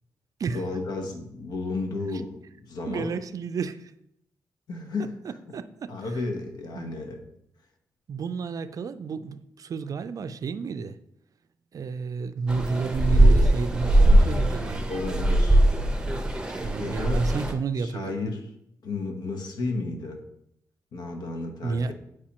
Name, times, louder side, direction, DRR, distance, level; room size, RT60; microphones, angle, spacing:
voice 1, 0.5-3.2 4.7-5.1 5.9-7.2 14.9-15.6 16.8-17.3 17.8-18.5 18.8-20.2 20.9-21.9, left 3 dB, 75° left, 1.0 m, -32 dB
voice 2, 2.9-3.9 5.2-6.0 6.8-7.0 8.1-11.0 11.7-15.0 16.6-18.1 21.6-21.9, right 4 dB, 55° right, 0.4 m, -31 dB
sound 1, 12.5-17.5, right 1 dB, 10° right, 0.8 m, -21 dB
8.4 x 4.8 x 2.9 m
cardioid pair, 75°, 7 cm